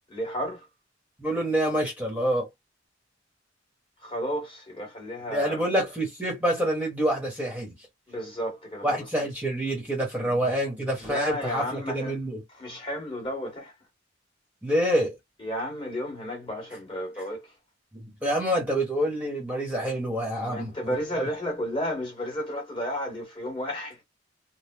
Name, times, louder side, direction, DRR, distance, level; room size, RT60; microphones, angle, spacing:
voice 1, 0.1-0.7 4.0-5.6 8.1-9.0 10.1-10.4 11.0-12.2 12.5-13.7 15.4-17.5 20.4-24.0, equal, 25° left, 1.9 m, -33 dB
voice 2, 1.2-2.5 5.3-7.7 8.8-12.4 14.6-15.1 17.9-21.3, right 1 dB, 10° right, 1.2 m, -27 dB
3.7 x 2.2 x 3.0 m
head